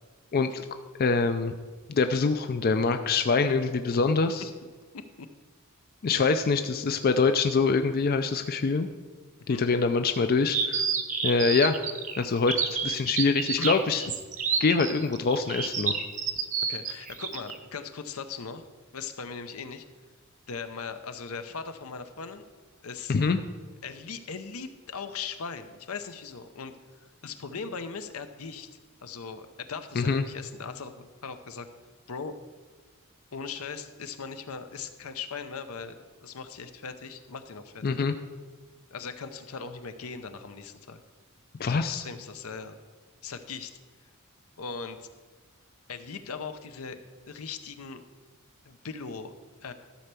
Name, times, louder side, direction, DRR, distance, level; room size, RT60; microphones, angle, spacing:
voice 1, 0.3-0.6 1.0-1.5 1.9-4.5 6.0-8.9 9.5-10.8 11.2-11.8 12.2-14.0 14.6-16.0 23.1-23.4 30.0-30.2 37.8-38.1 41.6-42.0, left 4 dB, 45° left, 8 dB, 0.4 m, -24 dB
sound 1, 10.5-17.6, right 6 dB, 35° right, 0.7 m, -29 dB
voice 2, 16.7-18.7 18.9-19.8 20.5-22.4 22.8-23.2 23.8-26.7 27.0-28.7 29.0-31.7 32.1-32.4 33.3-38.0 38.9-41.0 41.7-42.8 43.2-43.7 44.6-45.1 45.9-47.0 47.3-48.0 48.6-49.3 49.6-49.7, left 5 dB, 80° left, 9 dB, 0.7 m, -39 dB
13.0 x 4.5 x 6.8 m, 1.4 s
head